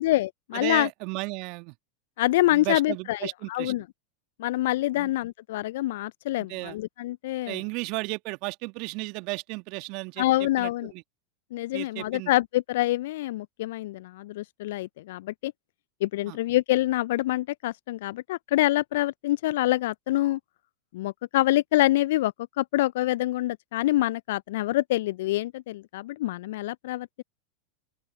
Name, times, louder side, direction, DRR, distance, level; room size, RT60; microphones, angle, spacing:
voice 1, 0.0-0.9 2.2-3.8 4.4-7.6 10.2-10.9 11.5-15.5 16.0-20.4 20.9-27.2, left 16 dB, 60° left, 0.6 m, -26 dB
voice 2, 0.5-1.7 2.5-3.7 5.0-5.1 6.5-6.8 7.5-10.2 10.6-11.0 11.7-12.3 16.3-16.4, right 28 dB, 50° right, 2.1 m, -34 dB
open air
figure-of-eight pair, 90°, 0 cm